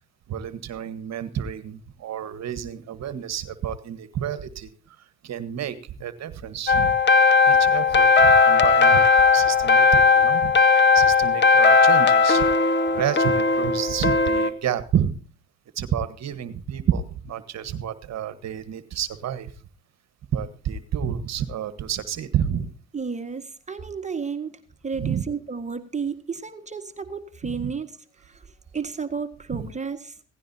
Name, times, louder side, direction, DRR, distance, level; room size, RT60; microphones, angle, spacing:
voice 1, 0.3-6.9 7.5-10.5 10.9-12.5 12.9-15.2 15.7-19.5 20.3-22.7 25.0-25.2 27.5-27.7 29.5-29.7, right 9 dB, 50° right, 14 dB, 1.5 m, -29 dB
sound 1, 6.7-14.5, left 4 dB, 30° left, 1.5 m, -17 dB
voice 2, 22.9-30.2, right 5 dB, 20° right, 7 dB, 1.7 m, -32 dB
17.0 x 16.0 x 2.8 m, 0.41 s
supercardioid pair, 80°, 35 cm